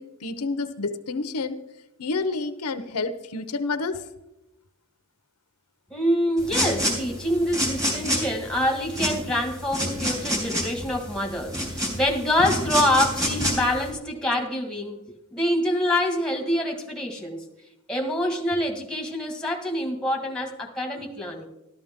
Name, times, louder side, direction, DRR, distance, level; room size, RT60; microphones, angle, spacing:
voice 1, 0.0-1.6 2.0-4.0, left 3 dB, 85° left, 11 dB, 0.8 m, -29 dB
voice 2, 5.9-15.0 15.3-17.5 17.9-21.5, left 1 dB, 5° left, 2 dB, 1.7 m, -26 dB
sound 1, 6.4-13.9, equal, 15° right, 3.6 m, -28 dB
13.5 x 13.0 x 3.7 m, 0.92 s
head